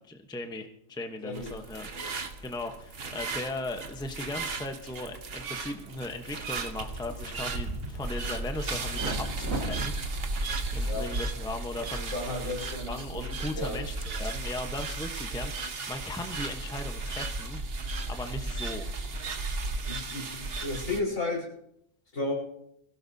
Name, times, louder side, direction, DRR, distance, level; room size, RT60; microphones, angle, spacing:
voice 1, 0.1-9.9 10.7-12.1 12.9-17.6 18.1-18.9, left 2 dB, 5° left, 5 dB, 0.8 m, -38 dB
voice 2, 1.2-1.6 1.9-2.1 10.8-11.1 11.9-13.3 13.5-13.8 19.9-21.5 22.1-22.3, left 2 dB, 70° left, -3 dB, 5.4 m, -34 dB
sound 1, 1.3-21.0, right 3 dB, 50° right, 1.2 m, -35 dB
sound 2, 5.8-12.1, right 2 dB, 75° right, 2.6 m, -39 dB
22.0 x 16.5 x 2.8 m, 0.74 s
omnidirectional pair, 1.4 m